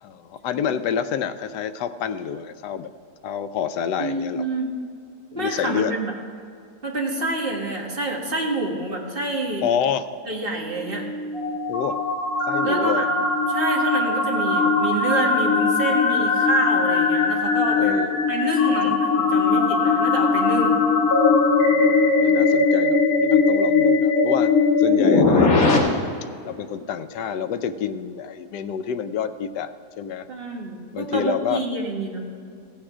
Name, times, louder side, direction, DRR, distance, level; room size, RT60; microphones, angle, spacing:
voice 1, 0.0-2.9 3.2-4.4 5.3-5.9 9.6-10.1 11.7-12.0 12.5-13.1 17.8-18.3 18.7-18.9 21.6-24.5 24.8-25.8 26.4-30.3 30.9-31.6, left 8 dB, 90° left, 11 dB, 1.2 m, -28 dB
voice 2, 4.0-4.8 5.3-6.1 6.8-9.7 10.3-11.1 12.6-13.0 13.5-17.9 18.3-20.8 25.0-25.1 30.3-32.2, right 2 dB, 35° right, -1 dB, 1.8 m, -27 dB
sound 1, 10.7-25.8, left 4 dB, 55° left, 2.0 m, -20 dB
15.5 x 8.8 x 4.9 m, 2.3 s
omnidirectional pair, 1.7 m